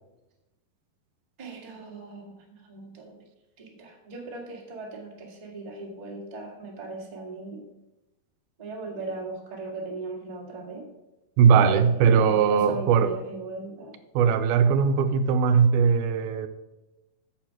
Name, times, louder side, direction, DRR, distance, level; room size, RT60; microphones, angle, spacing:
voice 1, 1.4-3.2 3.6-7.6 8.6-10.9 11.9-14.0, right 3 dB, 20° right, 1.1 m, -38 dB
voice 2, 11.4-13.1 14.2-16.5, right 6 dB, 85° right, 2.5 m, -20 dB
9.1 x 7.0 x 6.4 m
omnidirectional pair, 4.4 m